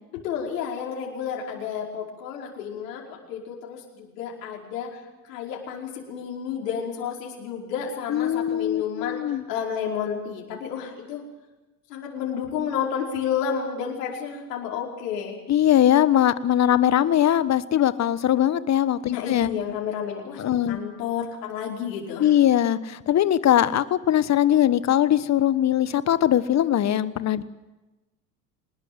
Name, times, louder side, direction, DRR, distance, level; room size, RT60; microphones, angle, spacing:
voice 1, 0.1-5.0 5.2-11.2 11.9-15.4 19.1-22.3, left 7 dB, 70° left, -1 dB, 5.3 m, -31 dB
voice 2, 8.1-9.4 15.5-19.5 20.4-20.8 22.2-27.4, left 11 dB, 30° left, 15 dB, 1.3 m, -21 dB
25.0 x 20.0 x 7.8 m, 1.1 s
hypercardioid pair, 80°, 50 cm